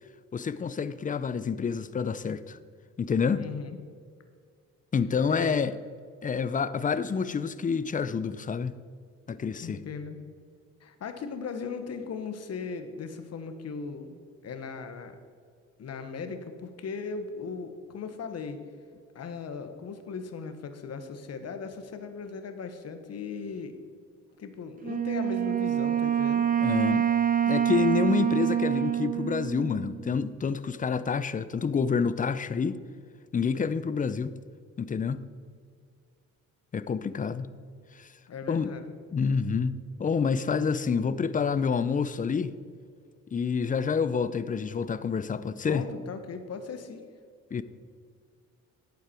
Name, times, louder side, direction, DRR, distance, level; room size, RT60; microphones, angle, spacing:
voice 1, 0.3-2.6 3.0-3.4 4.9-5.7 6.2-8.8 9.3-9.8 26.6-27.0 27.5-32.8 33.3-34.4 34.8-35.3 36.7-37.5 38.0-38.1 38.5-38.7 39.1-42.5 43.3-45.8 47.5-47.6, left 6 dB, 25° left, 0.6 m, -28 dB
voice 2, 3.4-3.8 5.3-5.6 9.6-10.2 10.8-15.1 15.8-18.6 19.1-23.8 24.4-26.5 38.3-38.9 45.6-47.1, left 5 dB, 55° left, 1.3 m, -38 dB
Wind instrument woodwind instrument, 24.8-30.3, right 9 dB, 25° right, 1.0 m, -26 dB
11.5 x 8.2 x 4.5 m
cardioid pair, 90°, 30 cm